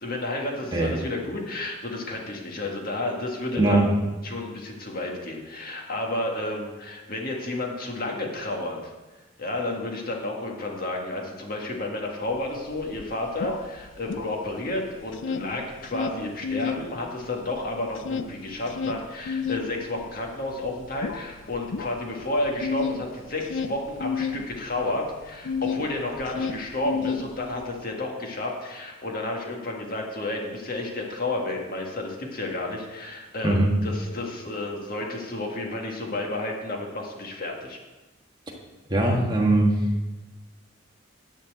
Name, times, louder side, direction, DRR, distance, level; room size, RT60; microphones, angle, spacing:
voice 1, 0.0-3.9 4.2-8.8 9.4-37.8, left 2 dB, 50° left, 0 dB, 1.7 m, -31 dB
voice 2, 3.5-3.9 33.4-33.7 38.9-39.7, right 2 dB, 20° right, -1 dB, 1.4 m, -20 dB
sound 1, 12.4-12.5 12.7-14.7 15.0-16.9 17.2-25.9 26.2-27.7, left 5 dB, 70° left, 0.5 m, -31 dB
10.5 x 4.5 x 7.9 m, 1.1 s
head